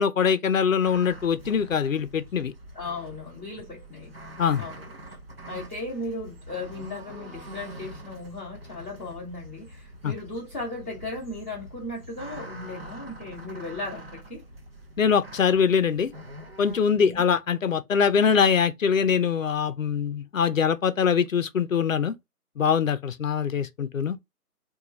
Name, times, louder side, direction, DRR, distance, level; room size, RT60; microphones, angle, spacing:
voice 1, 0.0-2.5 4.4-4.6 10.0-10.1 15.0-16.1 16.6-22.1 22.6-24.2, left 7 dB, 55° left, 0.5 m, -23 dB
sound 1, 0.8-16.8, right 1 dB, 40° right, 0.6 m, -44 dB
voice 2, 2.7-4.1 4.6-5.2 5.5-14.4 16.9-17.2, left 2 dB, 10° left, 0.8 m, -36 dB
3.0 x 2.3 x 3.8 m
figure-of-eight pair, 160°, 47 cm